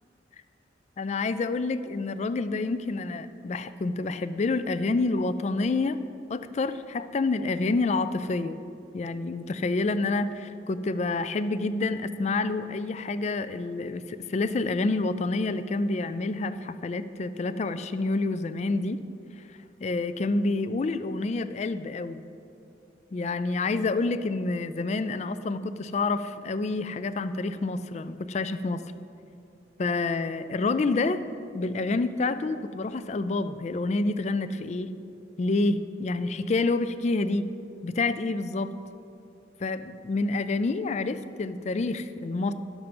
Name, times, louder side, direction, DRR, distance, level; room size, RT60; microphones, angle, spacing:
voice 1, 1.0-6.0 6.3-8.6 8.9-19.0 19.8-22.2 23.1-28.8 29.8-31.2 31.5-34.9 35.4-37.5 37.8-38.7 39.6-42.5, left 3 dB, 40° left, 13 dB, 0.3 m, -28 dB
11.5 x 7.2 x 5.2 m, 2.6 s
head